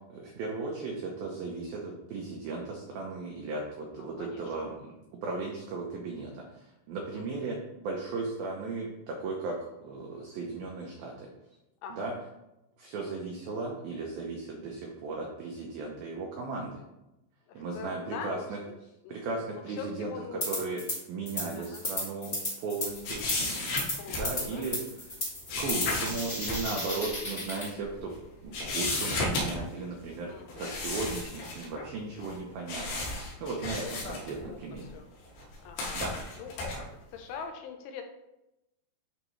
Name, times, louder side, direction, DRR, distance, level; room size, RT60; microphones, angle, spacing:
voice 1, 0.1-4.9 5.2-11.3 11.9-12.1 12.8-16.8 17.5-18.6 19.1-20.8 21.1-23.8 24.1-24.8 25.6-28.1 28.4-34.9 35.9-36.1, right 3 dB, 85° right, -1 dB, 2.1 m, -36 dB
voice 2, 3.9-4.4 7.2-7.5 11.8-12.1 13.1-13.2 17.5-18.5 19.0-20.4 20.8-20.9 21.6-21.8 23.9-24.8 26.7-26.8 30.3-30.7 33.8-34.6 34.9-35.1 35.6-36.0 36.4-36.7 37.1-38.0, left 6 dB, 80° left, 5 dB, 3.3 m, -43 dB
sound 1, 20.4-21.0 21.3-27.7, left 1 dB, 30° left, 1.2 m, -34 dB
sound 2, 23.0-24.7 25.5-26.6 27.0-27.1 27.8-28.2 28.5-29.8 30.5-31.9 32.2-32.4 32.7-34.9 35.4-36.8, left 2 dB, 65° left, 3.3 m, -33 dB
11.5 x 4.0 x 3.2 m, 0.91 s
omnidirectional pair, 5.6 m